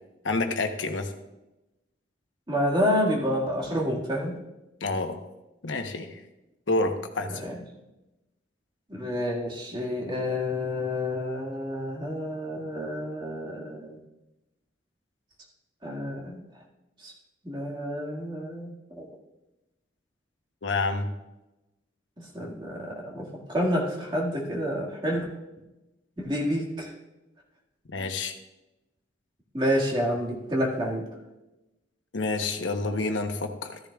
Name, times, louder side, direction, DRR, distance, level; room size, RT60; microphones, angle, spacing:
voice 1, 0.2-1.1 4.8-5.2 5.6-6.2 6.7-7.3 20.6-21.1 27.9-28.3 32.1-33.8, left 3 dB, 85° left, 6 dB, 1.0 m, -28 dB
voice 2, 2.5-4.4 7.3-7.6 8.9-14.0 15.8-16.4 17.0-17.1 17.4-19.1 22.2-25.3 26.2-26.9 29.5-31.1, equal, 25° right, -3 dB, 1.9 m, -29 dB
13.5 x 10.5 x 2.4 m, 0.99 s
head